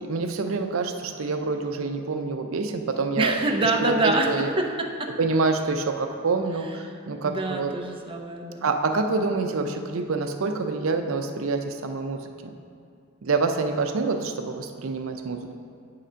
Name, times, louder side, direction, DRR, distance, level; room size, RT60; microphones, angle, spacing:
voice 1, 0.0-4.5 5.2-7.7 8.6-12.5 13.2-15.5, right 3 dB, 70° right, 6 dB, 0.5 m, -27 dB
voice 2, 3.2-5.1 6.8-6.9 7.2-8.7, right 2 dB, 25° right, 2 dB, 0.6 m, -25 dB
8.2 x 3.8 x 5.6 m, 2.3 s
head